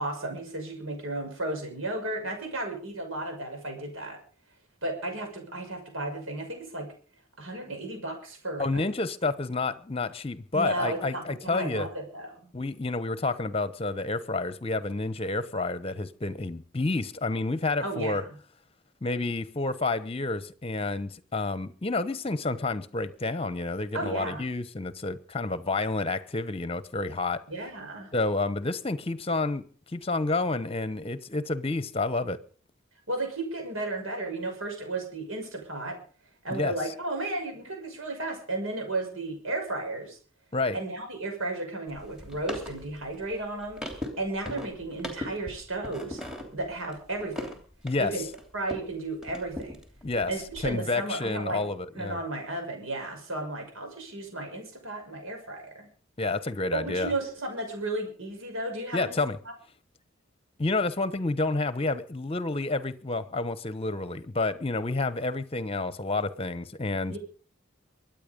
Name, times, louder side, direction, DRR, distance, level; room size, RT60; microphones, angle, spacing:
voice 1, 0.0-4.2 4.8-6.9 7.4-8.8 10.5-12.5 17.8-18.3 23.9-24.4 27.5-28.1 33.1-36.0 36.4-40.2 40.7-43.8 44.2-46.2 46.5-47.6 48.0-48.2 48.5-49.8 50.3-51.6 52.0-55.9 56.7-59.2 67.1-67.2, right 2 dB, 75° right, 6.1 m, -34 dB
voice 2, 8.6-11.9 12.5-18.2 19.0-27.4 28.1-32.4 36.5-36.7 40.5-40.8 47.8-48.1 50.0-50.3 50.6-52.2 56.2-57.1 58.9-59.4 60.6-67.2, left 3 dB, 30° left, 1.0 m, -29 dB
sound 1, 41.9-48.9 49.2-50.7, left 1 dB, 5° right, 3.1 m, -40 dB
23.5 x 9.3 x 5.3 m
head